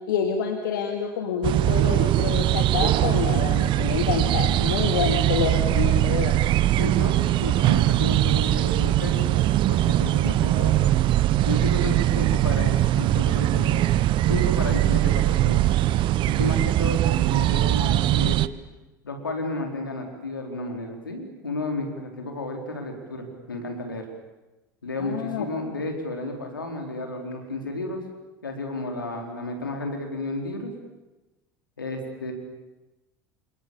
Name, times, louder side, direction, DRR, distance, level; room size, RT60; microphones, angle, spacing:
voice 1, 0.1-6.5 25.0-25.4, left 7 dB, 75° left, 5 dB, 2.5 m, -27 dB
sound 1, 1.4-18.5, right 14 dB, 50° right, 1.0 m, -21 dB
voice 2, 6.8-9.3 9.7-10.8 11.4-13.9 14.3-15.8 16.2-18.4 19.0-24.1 24.8-28.0 28.4-30.7 31.8-32.3, left 2 dB, 90° left, 3 dB, 4.3 m, -32 dB
28.0 x 26.0 x 7.2 m, 1.1 s
hypercardioid pair, 75°, 11 cm